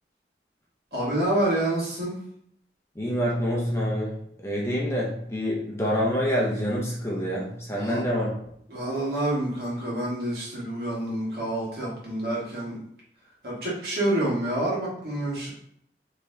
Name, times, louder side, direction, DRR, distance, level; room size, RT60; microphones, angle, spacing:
voice 1, 0.9-2.2 7.8-8.0 8.7-12.8 13.4-15.5, right 1 dB, 60° right, -6 dB, 1.6 m, -28 dB
voice 2, 3.0-8.3, equal, 15° left, -4 dB, 0.7 m, -27 dB
4.1 x 3.2 x 2.7 m, 0.69 s
head